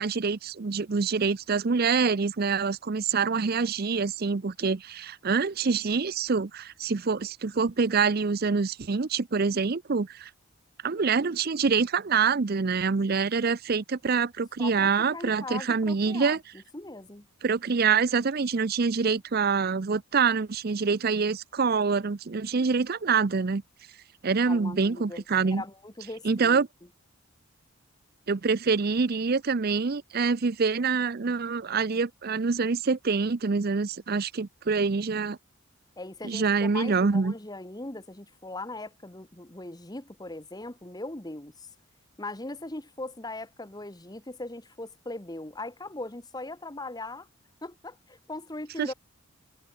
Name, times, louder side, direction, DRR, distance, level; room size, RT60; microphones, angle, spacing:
voice 1, 0.0-10.3 10.8-16.4 17.4-23.6 24.2-25.6 26.2-26.7 28.3-35.4 36.2-37.3 48.8-48.9, right 5 dB, 45° right, 0.5 m, -26 dB
voice 2, 14.6-16.4 16.7-17.2 24.4-26.6 36.0-41.7 42.2-47.3 47.6-48.9, left 2 dB, 20° left, 1.3 m, -39 dB
head